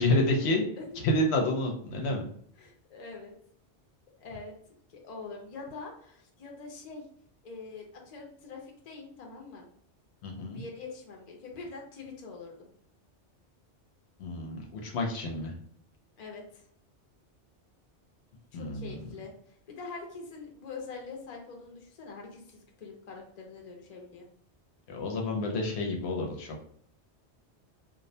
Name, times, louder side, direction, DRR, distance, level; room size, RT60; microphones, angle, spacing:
voice 1, 0.0-0.6 1.0-2.3 10.2-10.6 14.2-15.5 18.5-18.9 24.9-26.6, left 1 dB, 75° left, 1 dB, 0.8 m, -29 dB
voice 2, 2.6-3.3 4.2-4.5 4.9-7.0 7.4-9.7 10.5-12.7 16.2-16.7 18.5-24.3, left 4 dB, 45° left, 1 dB, 0.6 m, -44 dB
2.5 x 2.0 x 2.6 m, 0.64 s
omnidirectional pair, 1.2 m